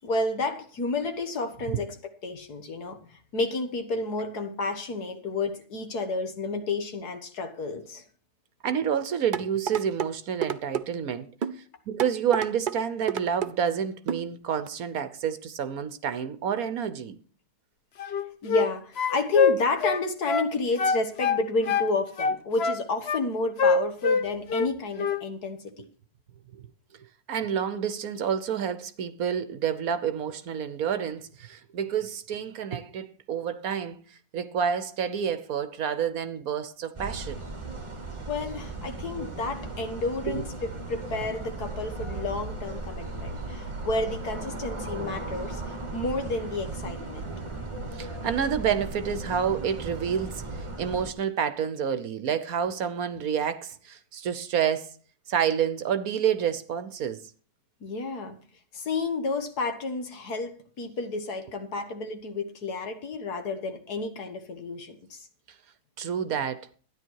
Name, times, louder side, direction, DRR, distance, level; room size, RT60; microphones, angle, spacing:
voice 1, 0.0-1.9 2.2-8.0 18.4-25.9 38.3-47.3 57.8-58.4 58.7-65.3, left 3 dB, 65° left, 2.0 m, -31 dB
voice 2, 8.6-17.2 26.6-26.7 27.3-37.4 40.3-40.4 47.9-55.0 55.3-57.2 66.0-66.7, right 8 dB, 65° right, 1.2 m, -29 dB
sound 1, 9.3-10.1 10.4-10.9 11.4-11.6 12.0-12.8 13.1-13.5 14.1-14.3 14.7-14.8, right 8 dB, 85° right, 0.4 m, -29 dB
sound 2, 18.0-18.7 19.0-20.5 20.8-21.9 22.2-23.2 23.6-24.7 25.0-25.2, left 5 dB, 50° left, 0.9 m, -24 dB
sound 3, 36.9-51.1, right 3 dB, 20° right, 1.3 m, -36 dB
13.0 x 10.0 x 4.6 m
omnidirectional pair, 1.8 m